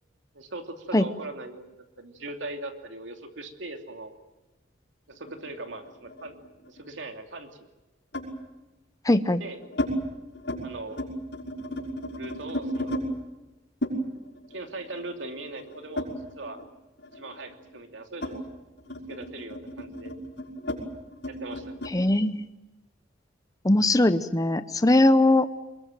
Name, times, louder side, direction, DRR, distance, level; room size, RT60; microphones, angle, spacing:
voice 1, 0.3-4.1 5.1-6.3 6.7-7.7 9.4-9.6 10.6-11.0 12.1-13.0 14.5-16.6 17.1-18.4 19.1-20.1 21.3-21.8, right 2 dB, 75° right, 5 dB, 2.9 m, -40 dB
sound 1, 5.3-6.8 8.1-8.4 9.1-9.9 10.3-10.6 10.9-13.1 13.8-16.7 17.0-22.0, left 1 dB, 65° left, 6.0 m, -35 dB
voice 2, 9.0-9.4 21.9-22.5 23.6-25.5, left 1 dB, 20° left, 10 dB, 0.8 m, -20 dB
24.0 x 22.0 x 9.1 m, 1.1 s
head